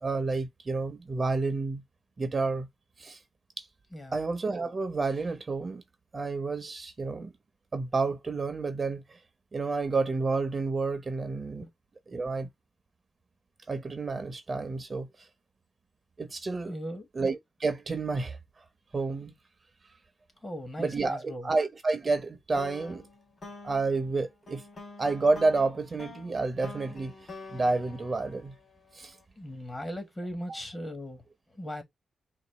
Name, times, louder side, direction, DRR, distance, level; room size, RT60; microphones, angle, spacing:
voice 1, 0.0-1.8 2.2-2.7 3.0-3.2 3.6-3.7 4.1-5.8 6.1-7.3 7.7-9.2 9.5-11.7 12.1-12.5 13.7-15.1 16.2-16.8 17.1-18.4 18.9-19.3 20.8-23.0 23.6-24.6 25.0-28.5 28.9-29.1 30.5-30.6, right 3 dB, 35° right, 0.9 m, -30 dB
voice 2, 16.7-17.0 20.4-21.5 29.4-31.2 31.5-31.8, equal, 20° left, 1.5 m, -38 dB
sound 1, 22.6-29.0, left 3 dB, 40° left, 2.5 m, -47 dB
4.0 x 2.6 x 3.8 m
cardioid pair, 110°, 0 cm